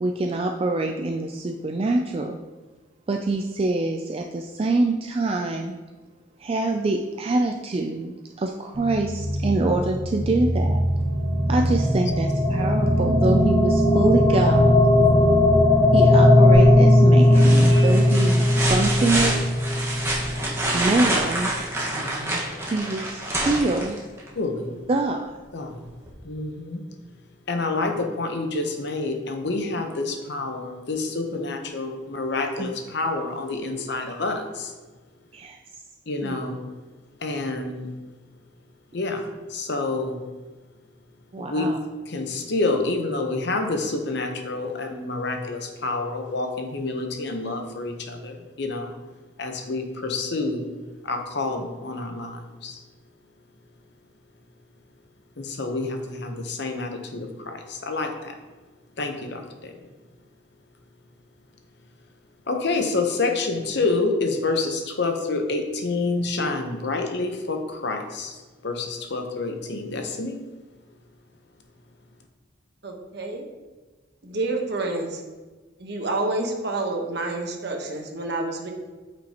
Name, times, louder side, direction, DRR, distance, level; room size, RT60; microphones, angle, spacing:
voice 1, 0.0-2.4 3.1-5.7 6.4-10.8 11.5-14.8 15.9-19.4 20.7-21.5 22.7-24.0 24.9-25.3 32.6-32.7 35.3-35.6 36.2-36.3 41.3-41.8, right 2 dB, 30° right, 3 dB, 0.3 m, -25 dB
sound 1, 8.8-21.0, left 1 dB, 25° left, 0.8 m, -18 dB
voice 2, 15.0-15.5 21.9-22.4 24.3-24.8 25.5-25.8 26.2-26.9 27.5-34.7 36.1-36.6 37.2-37.9 38.9-40.2 41.4-41.7 42.1-48.9 49.4-50.7 51.0-52.8 55.4-58.4 59.0-59.8 62.5-70.4, left 3 dB, 60° left, 4 dB, 0.8 m, -28 dB
sound 2, 16.5-16.9 17.3-24.3 26.1-26.2, right 1 dB, 15° right, 1.4 m, -27 dB
voice 3, 72.8-73.4 74.2-75.2 75.8-78.7, right 2 dB, 55° right, 2 dB, 1.1 m, -28 dB
8.8 x 5.2 x 2.9 m, 1.3 s
head